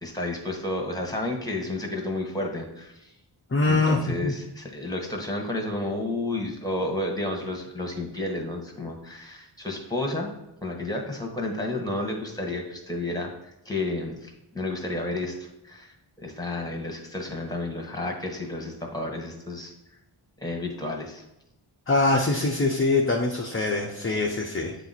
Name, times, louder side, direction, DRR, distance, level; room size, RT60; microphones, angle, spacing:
voice 1, 0.0-3.1 3.7-10.3 10.6-13.3 13.6-15.3 15.6-19.7 20.4-21.2, left 2 dB, 10° left, 1 dB, 1.2 m, -31 dB
voice 2, 3.5-4.3 21.9-24.7, left 2 dB, 25° left, 0 dB, 0.6 m, -23 dB
8.3 x 3.0 x 4.0 m, 0.87 s
wide cardioid pair, 50°, 49 cm